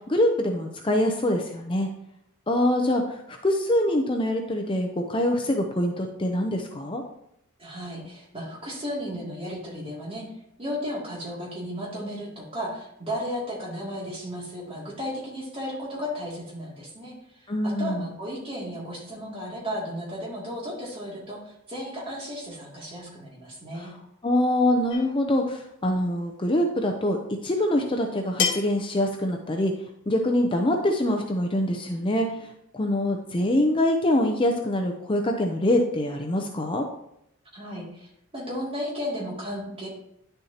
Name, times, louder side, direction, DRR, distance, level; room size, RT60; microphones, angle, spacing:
voice 1, 0.1-1.9 2.5-7.0 17.5-18.0 23.8-23.9 24.2-27.2 27.4-29.7 30.1-36.8, left 1 dB, 25° left, 3 dB, 0.6 m, -24 dB
voice 2, 7.6-10.2 10.6-23.9 37.5-39.9, equal, 25° right, -4 dB, 2.5 m, -34 dB
sound 1, 24.9-25.3 26.8-26.9 28.4-28.9, left 6 dB, 55° left, 1.5 m, -28 dB
10.0 x 6.8 x 2.9 m, 0.77 s
head